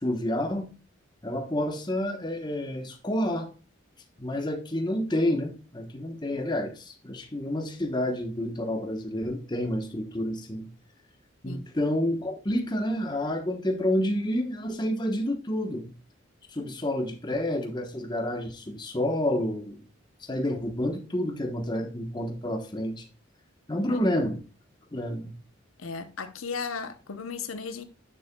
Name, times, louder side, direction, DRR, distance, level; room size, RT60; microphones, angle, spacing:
voice 1, 0.0-0.7 1.2-3.5 4.2-10.7 11.4-15.9 16.5-19.8 20.2-23.0 23.7-24.4 24.9-25.4, left 1 dB, 20° left, 1.1 m, -29 dB
voice 2, 25.8-27.8, left 5 dB, 85° left, 0.8 m, -36 dB
9.5 x 6.8 x 2.2 m
head